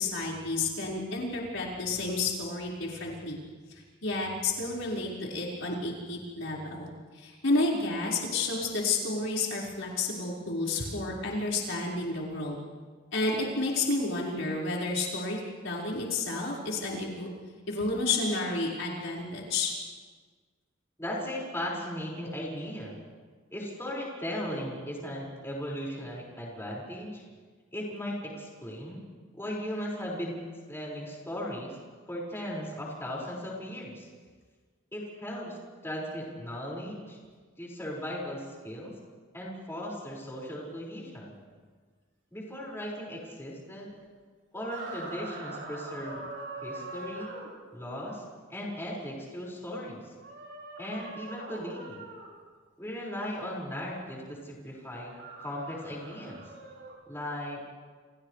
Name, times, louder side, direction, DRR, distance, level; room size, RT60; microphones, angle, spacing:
voice 1, 0.0-3.4 3.7-6.9 7.1-12.6 13.1-17.3 17.7-19.7, left 3 dB, 85° left, -4 dB, 5.3 m, -31 dB
voice 2, 21.0-22.9 23.5-27.2 27.7-29.0 29.3-30.4 30.7-31.8 32.1-34.1 34.9-35.6 35.8-37.2 37.6-39.0 39.3-41.3 42.3-43.9 44.5-46.2 46.6-47.3 47.7-48.2 48.5-50.1 50.8-52.0 52.8-56.4 57.1-57.7, equal, 15° left, -4 dB, 5.7 m, -37 dB
sound 1, 44.5-47.5 50.2-52.3 54.9-57.0, right 2 dB, 70° right, 6.6 m, -42 dB
29.5 x 28.5 x 3.4 m, 1.5 s
head